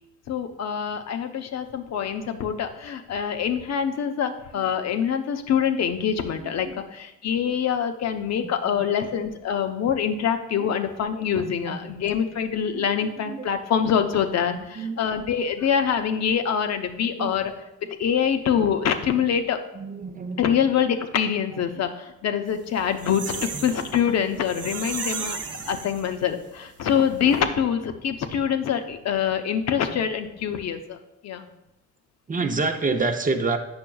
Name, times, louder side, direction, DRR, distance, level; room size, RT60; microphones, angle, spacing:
voice 1, 0.3-17.5 18.0-19.6 20.4-31.0 31.2-31.5, left 8 dB, 60° left, 7 dB, 0.7 m, -25 dB
voice 2, 6.2-6.8 8.4-8.9 10.6-10.7 11.4-12.0 12.7-12.9 13.2-13.5 14.5-15.3 17.2-17.3 17.8-17.9 19.7-20.5 23.5-23.7 32.3-33.6, right 3 dB, 25° right, 5 dB, 0.7 m, -29 dB
sound 1, 22.6-26.4 26.8-26.9 27.2-27.3, right 5 dB, 55° right, 1.0 m, -34 dB
8.7 x 6.0 x 2.3 m, 0.90 s
cardioid pair, 90°, 30 cm